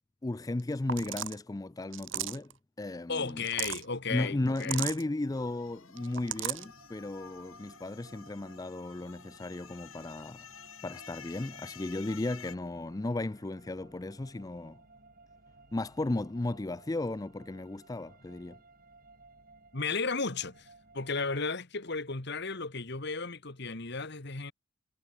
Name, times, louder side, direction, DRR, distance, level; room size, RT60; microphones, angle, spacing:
voice 1, 0.2-2.5 2.8-3.4 4.1-10.5 10.8-14.8 15.7-18.6, left 2 dB, 15° left, 0.4 m, -35 dB
sound 1, 0.6-0.7 0.9-1.4 1.9-2.5 3.3-3.8 4.6-5.0 6.0-6.6, right 10 dB, 65° right, 2.8 m, -35 dB
voice 2, 3.1-4.8 19.7-20.7 20.9-24.5, left 4 dB, 55° left, 1.9 m, -34 dB
sound 2, 5.2-12.6, left 7 dB, 85° left, 5.0 m, -51 dB
sound 3, 6.1-21.2, right 3 dB, 45° right, 6.7 m, -59 dB
head